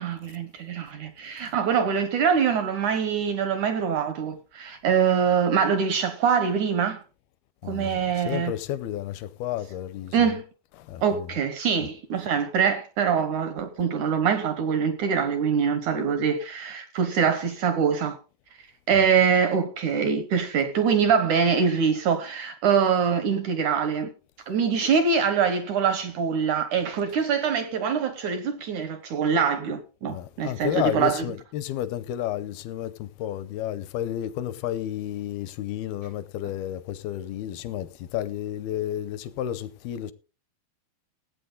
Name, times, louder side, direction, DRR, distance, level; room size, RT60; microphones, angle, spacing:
voice 1, 0.0-7.0 7.6-8.5 10.1-10.4 11.0-18.2 18.9-24.1 24.5-31.2, right 6 dB, 80° right, 1.7 m, -24 dB
voice 2, 7.6-10.3 10.8-11.3 30.1-40.1, left 12 dB, 80° left, 2.4 m, -31 dB
17.5 x 8.4 x 3.8 m
omnidirectional pair, 5.0 m